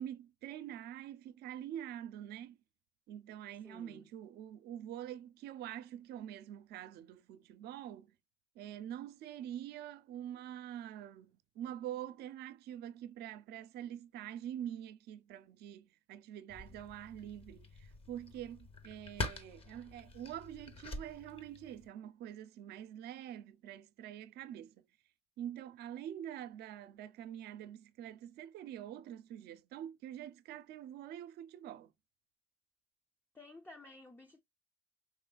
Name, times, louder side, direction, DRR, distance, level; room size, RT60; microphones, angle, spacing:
voice 1, 0.0-2.6 3.1-8.1 8.6-24.9 25.4-31.9, right 11 dB, 75° right, 0.6 m, -45 dB
voice 2, 3.6-4.1 33.3-34.4, left 2 dB, 10° left, 0.6 m, -54 dB
sound 1, 16.5-21.9, left 3 dB, 35° left, 0.9 m, -45 dB
4.9 x 3.2 x 2.2 m
cardioid pair, 110°, 17 cm